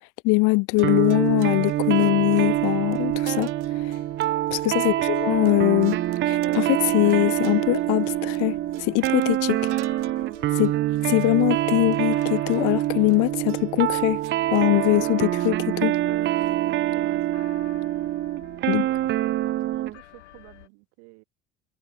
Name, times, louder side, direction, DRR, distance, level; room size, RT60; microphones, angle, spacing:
voice 1, 0.2-4.0 4.5-6.0 6.3-9.7 10.5-10.7 11.0-14.2 14.5-16.0 18.7-18.9, left 26 dB, 60° left, 0.8 m, -22 dB
sound 1, 0.7-20.7, left 14 dB, 80° left, 2.2 m, -51 dB
sound 2, 0.8-20.0, right 14 dB, 35° right, 0.4 m, -25 dB
sound 3, 0.8-17.2, right 15 dB, 85° right, 0.6 m, -42 dB
voice 2, 16.9-17.5 18.6-21.2, right 40 dB or more, 70° right, 4.5 m, -49 dB
hypercardioid pair, 65°, 35 cm